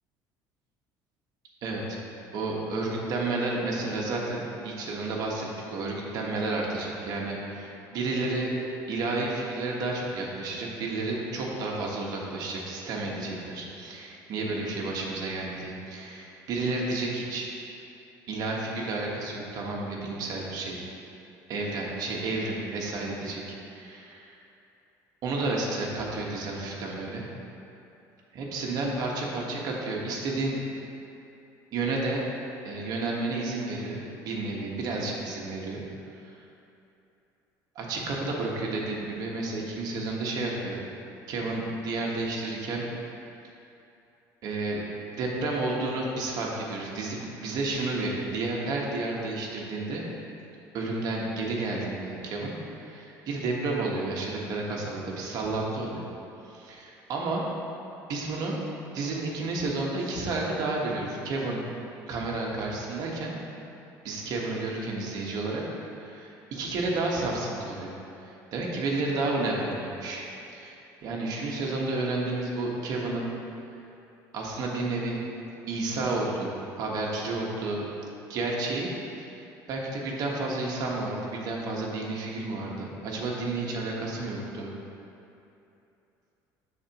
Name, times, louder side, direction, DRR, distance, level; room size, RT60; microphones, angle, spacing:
voice 1, 1.6-2.0 2.3-8.5 8.9-17.5 18.3-20.9 21.5-23.4 23.7-24.3 25.2-27.2 28.3-30.6 31.7-32.2 32.6-35.8 37.7-40.8 41.3-42.9 44.4-44.8 45.1-50.0 50.7-56.0 56.5-57.4 58.1-58.6 58.9-61.6 62.1-63.3 64.0-65.6 66.0-67.9 68.2-70.2 70.5-70.7 71.0-73.3 74.3-75.2 75.7-77.8 78.3-78.9 79.3-79.4 79.7-84.7, right 2 dB, 60° right, -2 dB, 1.4 m, -31 dB
13.0 x 4.3 x 3.0 m, 2.8 s
cardioid pair, 115°, 7 cm